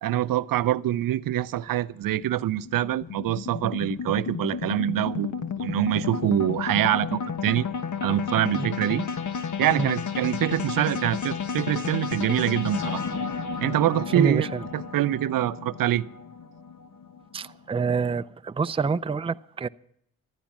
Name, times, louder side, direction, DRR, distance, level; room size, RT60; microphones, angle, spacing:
voice 1, 0.0-7.7 8.0-9.1 9.6-13.0 13.6-14.5 14.7-16.0, right 13 dB, 70° right, 0.6 m, -25 dB
sound 1, 1.4-17.8, left 6 dB, 55° left, 1.4 m, -32 dB
voice 2, 14.1-14.6 17.3-19.7, right 4 dB, 15° right, 0.5 m, -27 dB
14.5 x 9.9 x 7.3 m
supercardioid pair, 50°, 35 cm